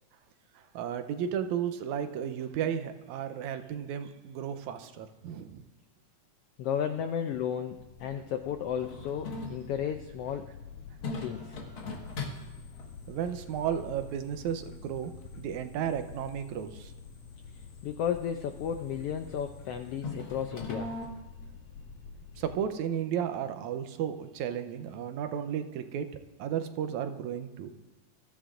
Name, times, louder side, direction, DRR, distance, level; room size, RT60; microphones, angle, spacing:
voice 1, 0.6-5.6 13.1-15.1 15.4-16.9 22.4-26.1 26.4-27.7, right 9 dB, 85° right, 8 dB, 2.1 m, -33 dB
voice 2, 6.6-10.5 11.2-11.6 17.8-20.9, left 8 dB, 85° left, 6 dB, 1.3 m, -33 dB
sound 1, 7.7-22.6, left 5 dB, 65° left, 2.0 m, -48 dB
sound 2, 8.8-21.1, left 3 dB, 50° left, 2.2 m, -43 dB
22.5 x 13.5 x 2.5 m, 1.1 s
omnidirectional pair, 3.3 m